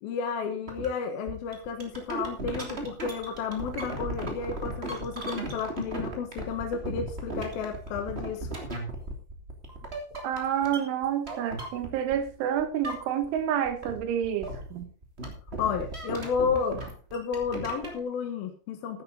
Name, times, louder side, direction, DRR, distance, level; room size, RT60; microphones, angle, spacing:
voice 1, 0.0-8.5 15.6-16.8 17.1-19.0, left 6 dB, 65° left, 5 dB, 2.6 m, -32 dB
sound 1, 0.7-0.9 1.3-12.3 12.6-13.4 13.6-18.0, right 2 dB, 20° right, 1.6 m, -36 dB
voice 2, 10.2-14.9, right 9 dB, 75° right, 9 dB, 3.4 m, -29 dB
14.5 x 10.5 x 4.0 m, 0.36 s
omnidirectional pair, 6.0 m